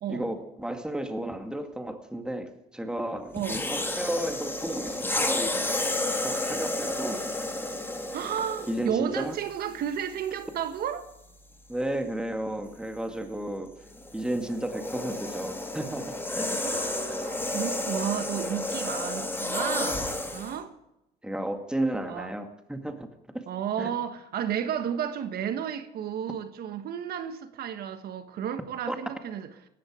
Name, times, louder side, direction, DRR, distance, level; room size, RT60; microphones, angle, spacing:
voice 1, 0.1-5.8 6.2-7.3 8.7-9.4 11.7-13.7 14.1-16.6 21.2-23.1 23.3-23.4 23.8-23.9 28.9-29.0, right 1 dB, 5° right, 2.2 m, -33 dB
voice 2, 3.3-3.6 8.1-11.1 16.6-20.7 22.0-22.3 23.5-29.5, right 9 dB, 65° right, 1.4 m, -32 dB
sound 1, 3.4-8.9 9.7-9.9 13.9-20.6, left 2 dB, 15° left, 2.6 m, -31 dB
18.0 x 13.5 x 5.0 m
cardioid pair, 110°, 17 cm